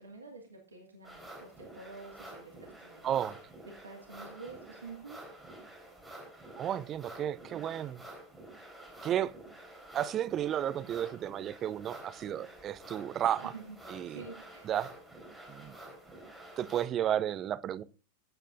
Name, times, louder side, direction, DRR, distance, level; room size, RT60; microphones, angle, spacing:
voice 1, 0.0-3.0 3.8-5.2 13.4-13.8 14.0-14.7, right 4 dB, 75° right, 2.0 m, -48 dB
sound 1, 1.0-16.8, right 1 dB, ahead, 3.7 m, -50 dB
voice 2, 3.0-3.4 6.6-8.0 9.0-9.3 9.9-13.5 13.9-14.2 14.6-14.9 15.5-15.8 16.6-17.8, right 10 dB, 30° right, 0.6 m, -33 dB
13.5 x 9.0 x 2.5 m
figure-of-eight pair, 90°, 0 cm